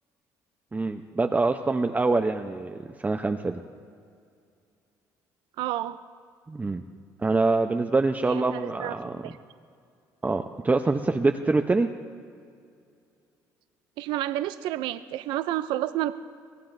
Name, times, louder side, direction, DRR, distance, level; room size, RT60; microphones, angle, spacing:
voice 1, 0.7-3.6 6.5-6.8 7.2-9.3 10.2-11.9, right 3 dB, 20° right, 5 dB, 0.8 m, -25 dB
voice 2, 5.6-6.0 8.3-9.0 9.2-9.4 14.0-16.1, right 14 dB, 75° right, 12 dB, 0.5 m, -30 dB
24.0 x 17.0 x 2.7 m, 2.4 s
supercardioid pair, 70°, 8 cm